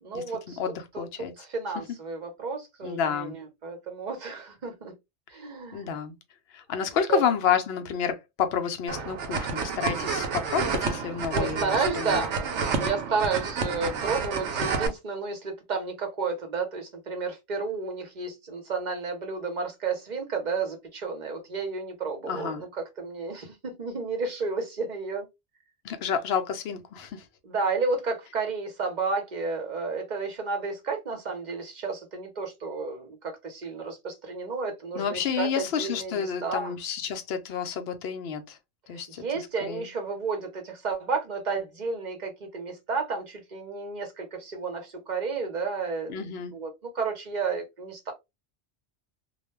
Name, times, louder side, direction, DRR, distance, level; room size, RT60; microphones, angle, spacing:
voice 1, 0.0-0.6 0.9-1.0 1.4-4.9 5.3-5.9 7.1-7.2 11.3-22.7 23.0-25.3 27.4-36.7 39.2-48.1, right 4 dB, 45° right, 0.9 m, -32 dB
voice 2, 0.6-1.3 2.8-3.3 5.7-6.1 6.5-12.2 22.3-22.6 25.8-27.3 35.0-38.6 38.9-39.9 46.1-46.5, left 7 dB, 70° left, 0.8 m, -30 dB
sound 1, 8.9-14.9, right 5 dB, 90° right, 0.9 m, -29 dB
2.3 x 2.2 x 3.1 m
omnidirectional pair, 1.2 m